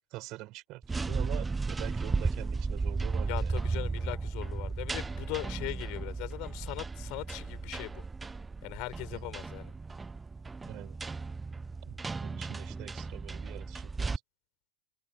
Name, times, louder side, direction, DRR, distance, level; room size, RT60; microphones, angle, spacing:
voice 1, 0.1-3.6 9.1-9.2 10.6-11.0 11.8-14.2, right 19 dB, 40° right, 6.5 m, -45 dB
sound 1, 0.8-14.2, right 4 dB, 10° right, 1.1 m, -35 dB
voice 2, 3.3-8.0 8.6-9.7, left 27 dB, 45° left, 5.8 m, -40 dB
figure-of-eight pair, 90°, 0 cm